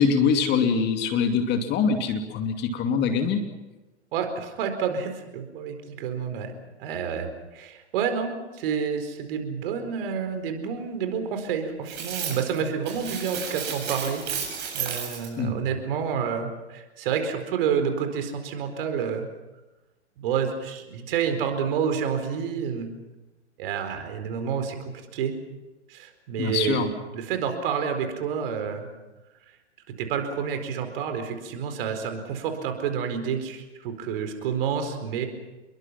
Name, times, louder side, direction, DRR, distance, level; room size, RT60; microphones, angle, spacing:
voice 1, 0.0-3.4 15.4-15.6 26.4-26.9, left 6 dB, 30° left, 6 dB, 2.6 m, -23 dB
voice 2, 4.1-6.5 6.8-14.2 14.7-19.2 20.2-22.9 23.6-25.4 25.9-26.9 27.1-28.9 30.0-35.3, right 7 dB, 50° right, 7 dB, 4.5 m, -29 dB
sound 1, 11.9-12.6 12.8-15.3, right 7 dB, 30° right, 8.0 m, -33 dB
28.5 x 22.0 x 5.9 m, 1.1 s
hypercardioid pair, 120°, 35 cm